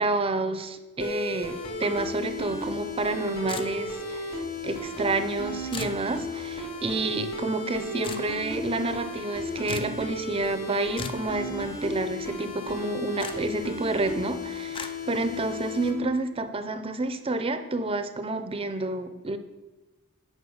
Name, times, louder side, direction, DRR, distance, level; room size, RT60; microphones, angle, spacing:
voice 1, 0.0-19.4, right 2 dB, 25° right, 10 dB, 0.6 m, -29 dB
sound 1, 1.0-15.9, left 1 dB, 45° left, 2.2 m, -35 dB
sound 2, 3.5-4.0 5.7-6.0 8.0-8.3 9.7-10.0 11.0-11.3 13.2-13.4 14.7-14.9, left 4 dB, 25° left, 0.4 m, -36 dB
9.7 x 5.1 x 5.5 m, 1.2 s
head